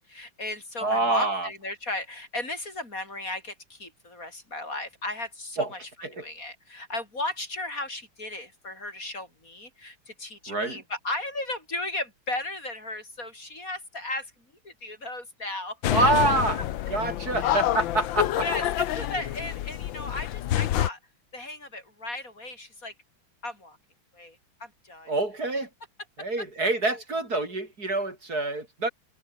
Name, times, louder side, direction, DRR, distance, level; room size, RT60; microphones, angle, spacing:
voice 1, 0.1-5.8 6.1-14.3 14.6-16.1 17.4-17.6 18.4-21.0 21.3-22.9 23.4-23.8 24.1-25.1 26.9-27.0, left 2 dB, 40° left, 6.4 m, -35 dB
voice 2, 0.8-1.5 5.6-5.7 6.0-6.2 10.5-10.8 15.9-16.6 16.9-18.4 25.1-25.7 26.2-28.9, right 2 dB, 45° right, 5.7 m, -26 dB
sound 1, 15.8-20.9, left 13 dB, 70° left, 1.5 m, -27 dB
omnidirectional pair, 2.3 m